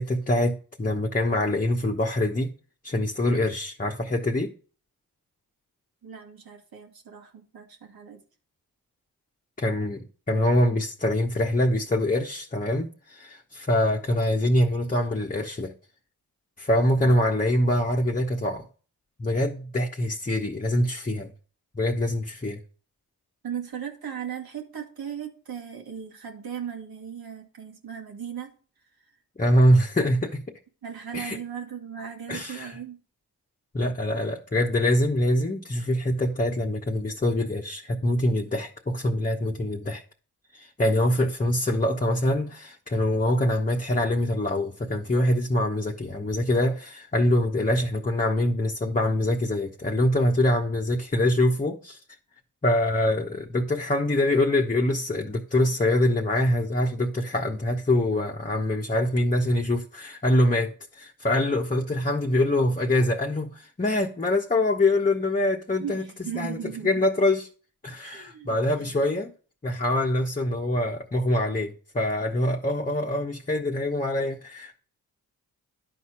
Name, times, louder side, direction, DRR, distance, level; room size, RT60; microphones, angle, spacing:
voice 1, 0.0-2.5 2.8-4.5 9.6-15.7 16.6-18.7 19.2-21.3 21.7-22.6 29.4-30.4 31.1-31.4 32.3-32.7 33.7-40.0 40.5-52.0 52.6-66.0 66.3-67.5 67.8-69.3 69.6-74.8, left 1 dB, 20° left, 1.0 m, -24 dB
voice 2, 6.0-8.2 17.0-17.3 23.4-28.5 30.8-33.0 65.8-67.1 68.0-68.9, right 8 dB, 70° right, 1.6 m, -37 dB
11.0 x 4.2 x 4.8 m
supercardioid pair, 45°, 37 cm